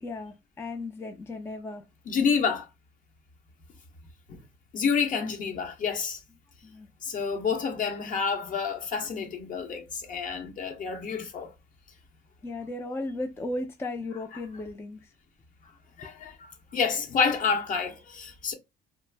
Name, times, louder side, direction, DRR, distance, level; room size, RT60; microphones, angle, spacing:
voice 1, 0.0-1.8 6.6-6.9 12.4-15.1 16.0-16.1, left 2 dB, 15° left, 0.4 m, -35 dB
voice 2, 2.1-2.7 4.3-4.4 4.7-6.2 7.0-11.5 16.0-18.5, left 6 dB, 50° left, 0.8 m, -29 dB
2.4 x 2.0 x 3.2 m
cardioid pair, 110°, 17 cm